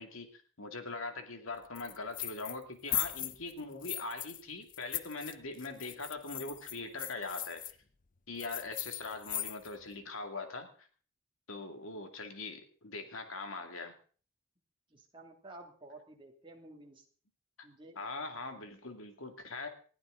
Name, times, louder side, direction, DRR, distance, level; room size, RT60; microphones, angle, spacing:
voice 1, 0.0-7.6 8.3-10.9 11.5-13.9 17.6-17.7 18.0-19.7, left 3 dB, 80° left, 6 dB, 2.4 m, -42 dB
sound 1, 1.8-2.6 2.9-4.4 4.7-7.7 8.4-9.8, left 13 dB, 40° left, 0.6 m, -38 dB
voice 2, 14.9-17.0 17.6-18.0, right 2 dB, 25° right, 1 dB, 2.5 m, -52 dB
20.5 x 14.0 x 3.9 m, 0.42 s
head